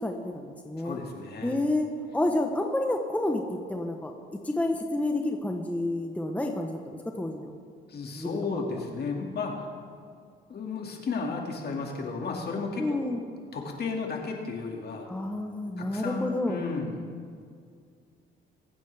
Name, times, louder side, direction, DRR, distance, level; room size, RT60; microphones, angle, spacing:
voice 1, 0.0-1.0 1.4-3.4 3.7-4.1 4.4-7.5 8.2-8.8 12.8-13.2 15.1-16.6, left 1 dB, 5° left, 3 dB, 1.0 m, -29 dB
voice 2, 0.8-1.6 7.9-9.7 10.5-13.0 13.5-15.1 15.8-17.1, left 4 dB, 55° left, 1 dB, 2.2 m, -33 dB
22.0 x 9.0 x 3.5 m, 2.2 s
cardioid pair, 90°, 20 cm